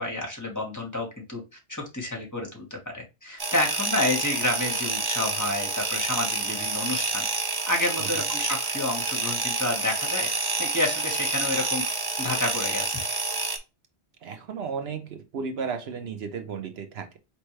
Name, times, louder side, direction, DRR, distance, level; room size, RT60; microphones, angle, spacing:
voice 1, 0.0-1.4 1.7-7.2 7.7-10.3 10.6-11.8 12.2-13.0, left 1 dB, 15° left, 1.5 m, -29 dB
sound 1, 3.4-13.6, right 3 dB, 30° right, 0.5 m, -28 dB
voice 2, 14.2-17.2, right 6 dB, 75° right, 1.0 m, -34 dB
4.4 x 3.3 x 3.1 m
omnidirectional pair, 1.1 m